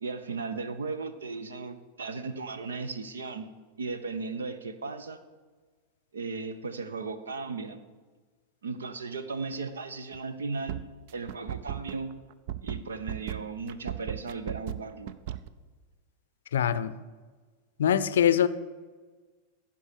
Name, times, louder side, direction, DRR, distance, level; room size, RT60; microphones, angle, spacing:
voice 1, 0.0-3.5 3.8-5.2 6.1-7.8 8.6-10.8 11.1-12.2 12.6-15.1, right 4 dB, 70° right, 12 dB, 0.8 m, -36 dB
sound 1, 10.1-10.3 10.7-15.5, right 11 dB, 50° right, 0.5 m, -36 dB
voice 2, 16.5-16.9 17.8-18.5, left 9 dB, 60° left, 15 dB, 0.5 m, -23 dB
15.0 x 5.4 x 6.7 m, 1.4 s
figure-of-eight pair, 90°, 0 cm